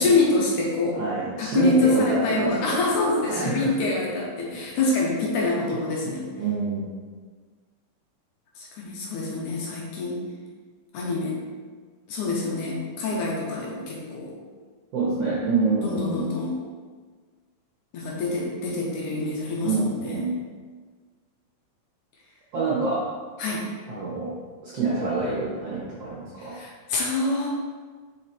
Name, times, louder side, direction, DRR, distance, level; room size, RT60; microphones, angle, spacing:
voice 1, 0.0-1.0 1.4-6.3 8.6-10.2 10.9-11.4 12.1-14.3 15.8-16.6 17.9-20.3 23.4-23.6 26.4-27.5, left 2 dB, 70° left, -3 dB, 2.1 m, -25 dB
voice 2, 0.9-2.8 3.2-3.7 6.0-6.9 14.9-16.3 19.6-20.3 22.5-23.1 23.9-24.4 24.6-26.7, right 3 dB, 65° right, -7 dB, 1.5 m, -27 dB
5.0 x 4.9 x 4.3 m, 1.5 s
omnidirectional pair, 4.2 m